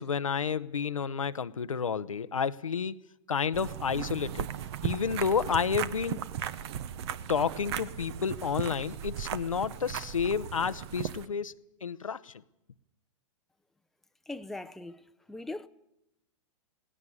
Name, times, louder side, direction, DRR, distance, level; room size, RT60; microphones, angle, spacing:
voice 1, 0.0-3.0 3.3-4.5 4.8-6.2 7.3-12.3, left 6 dB, 90° left, 1.0 m, -30 dB
sound 1, 3.5-11.3, right 10 dB, 55° right, 1.2 m, -36 dB
voice 2, 14.3-15.7, left 2 dB, ahead, 0.7 m, -40 dB
19.0 x 16.5 x 9.9 m
hypercardioid pair, 120°, 17 cm